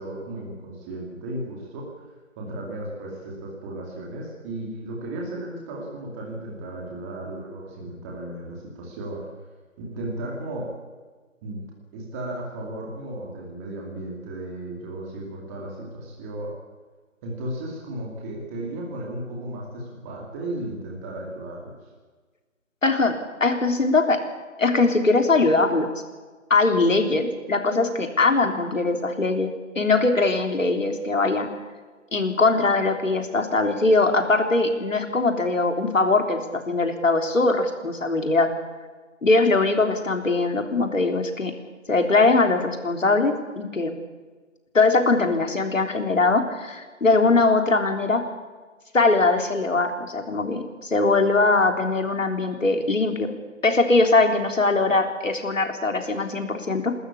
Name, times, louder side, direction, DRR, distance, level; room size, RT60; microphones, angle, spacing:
voice 1, 0.0-1.8 2.4-9.2 9.8-10.7 11.4-11.6 11.9-16.5 17.2-21.7, right 1 dB, 10° right, -2 dB, 2.5 m, -35 dB
voice 2, 22.8-24.2 24.6-25.9 26.5-29.5 29.8-31.5 32.1-38.5 39.2-41.5 41.9-43.9 44.7-48.2 48.9-53.3 53.6-57.0, left 3 dB, 70° left, 6 dB, 3.7 m, -21 dB
28.5 x 13.5 x 8.6 m, 1.4 s
figure-of-eight pair, 160°, 40 cm